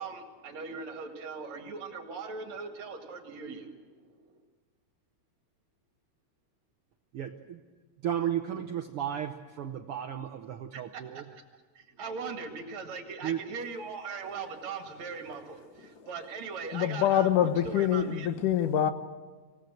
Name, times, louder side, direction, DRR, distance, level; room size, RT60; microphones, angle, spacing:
voice 1, 0.0-4.4 10.7-11.2 11.7-17.3 17.6-18.3, right 5 dB, 60° right, 3.0 m, -40 dB
voice 2, 7.1-7.6 8.0-11.4 13.2-13.4, right 10 dB, 85° right, 1.2 m, -34 dB
voice 3, 16.7-18.9, left 10 dB, 80° left, 2.5 m, -25 dB
25.0 x 17.5 x 7.9 m
omnidirectional pair, 3.7 m